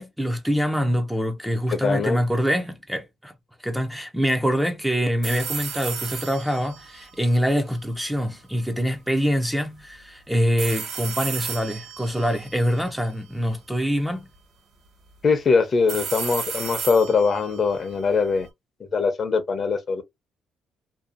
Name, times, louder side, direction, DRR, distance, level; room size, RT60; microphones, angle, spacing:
voice 1, 0.0-3.3 3.6-14.3, equal, 5° right, 0.5 m, -25 dB
voice 2, 1.7-2.2 15.2-18.5 18.8-20.0, left 4 dB, 40° left, 0.7 m, -22 dB
sound 1, 5.2-8.3 10.6-13.7 15.9-18.5, right 6 dB, 55° right, 1.3 m, -35 dB
2.7 x 2.3 x 2.5 m
cardioid pair, 110°, 0 cm